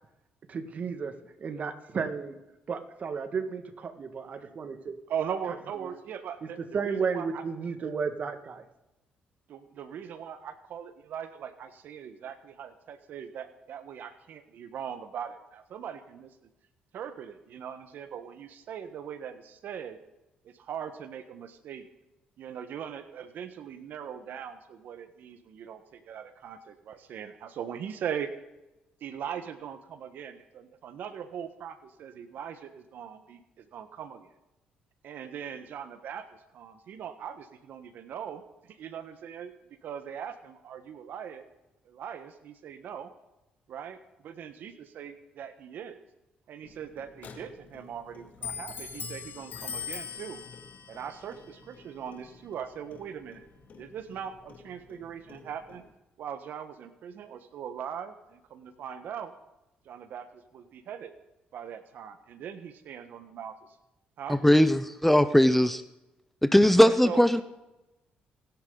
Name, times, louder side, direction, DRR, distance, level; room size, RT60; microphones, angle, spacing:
voice 1, 0.5-2.4 2.7-5.0 5.8-5.9 6.4-8.6, right 5 dB, 50° right, 7 dB, 1.9 m, -33 dB
voice 2, 5.1-7.4 9.5-16.3 16.9-20.0 20.4-21.8 22.4-28.3 29.0-34.3 35.0-36.3 36.5-38.4 38.7-39.5 39.8-41.4 41.8-43.1 43.7-44.0 44.2-46.0 46.5-50.4 50.9-53.4 53.8-55.8 56.2-59.3 59.8-61.1 61.5-63.7 64.2-64.4 66.8-67.4, right 8 dB, 70° right, 9 dB, 1.4 m, -40 dB
Clock, 46.6-55.9, left 6 dB, 60° left, 2.5 m, -43 dB
voice 3, 64.3-65.8 66.4-67.4, equal, 5° left, 12 dB, 0.7 m, -20 dB
26.5 x 10.5 x 4.0 m, 0.97 s
cardioid pair, 75°, 3 cm